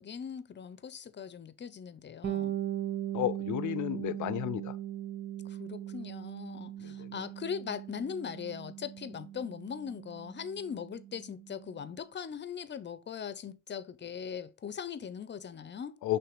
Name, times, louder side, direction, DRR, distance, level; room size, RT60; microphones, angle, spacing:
voice 1, 0.0-2.5 5.4-16.0, left 7 dB, 35° left, 0.6 m, -40 dB
Bass guitar, 2.2-11.8, right 12 dB, 65° right, 1.4 m, -39 dB
voice 2, 3.1-4.8 6.8-7.1 16.0-16.2, left 14 dB, 75° left, 0.6 m, -32 dB
5.9 x 3.3 x 5.0 m
cardioid pair, 90°, 30 cm